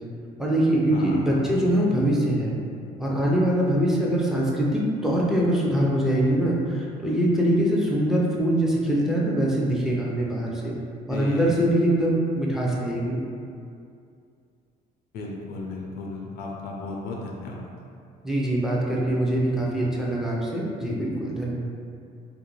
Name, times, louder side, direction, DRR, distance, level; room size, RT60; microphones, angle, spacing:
voice 1, 0.4-2.5 3.0-10.8 11.1-13.2 18.2-21.5, right 1 dB, 5° right, -4 dB, 0.4 m, -23 dB
voice 2, 0.9-1.6 11.1-11.9 15.1-17.6, left 2 dB, 65° left, -2 dB, 0.4 m, -35 dB
2.4 x 2.1 x 3.0 m, 2.4 s
cardioid pair, 110°, 17 cm